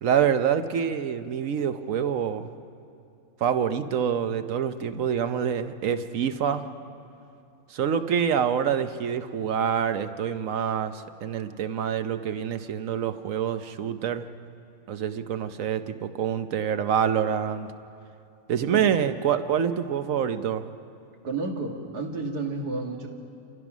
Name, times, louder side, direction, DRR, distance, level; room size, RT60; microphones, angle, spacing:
voice 1, 0.0-2.5 3.4-6.7 7.7-14.3 14.9-17.7 18.5-20.6, right 8 dB, 60° right, 10 dB, 1.1 m, -26 dB
voice 2, 21.2-23.1, right 3 dB, 85° right, 2 dB, 2.4 m, -31 dB
28.5 x 16.0 x 6.1 m, 2.6 s
omnidirectional pair, 1.6 m